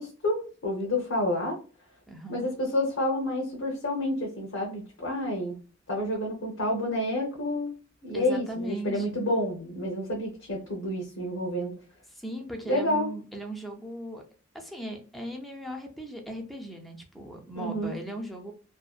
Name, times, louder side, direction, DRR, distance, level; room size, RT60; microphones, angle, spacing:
voice 1, 0.0-1.6 2.3-5.6 5.9-7.7 8.0-11.7 12.6-13.1 17.5-17.9, left 1 dB, 85° left, -2 dB, 0.7 m, -29 dB
voice 2, 2.1-2.5 8.1-9.2 12.1-14.2 14.5-18.5, right 1 dB, ahead, 1 dB, 0.3 m, -38 dB
2.6 x 2.1 x 2.3 m, 0.38 s
head